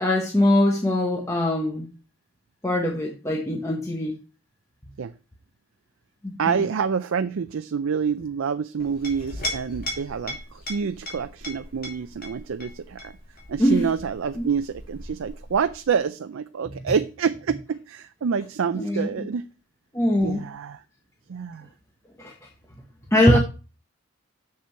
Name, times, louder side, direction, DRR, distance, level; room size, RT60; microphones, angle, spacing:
voice 1, 0.0-1.9 2.6-4.2 6.2-6.6 13.6-13.9 14.4-14.5 18.7-19.3 19.9-20.4 22.2-22.3 23.1-23.4, left 1 dB, 15° left, -1 dB, 0.9 m, -22 dB
voice 2, 6.4-13.1 13.5-19.5 20.2-20.8 21.3-21.7 23.3-23.4, right 6 dB, 75° right, 10 dB, 0.4 m, -27 dB
Chink clink, 8.8-15.9, left 1 dB, 45° left, 2.6 m, -37 dB
6.8 x 6.5 x 4.3 m, 0.34 s
head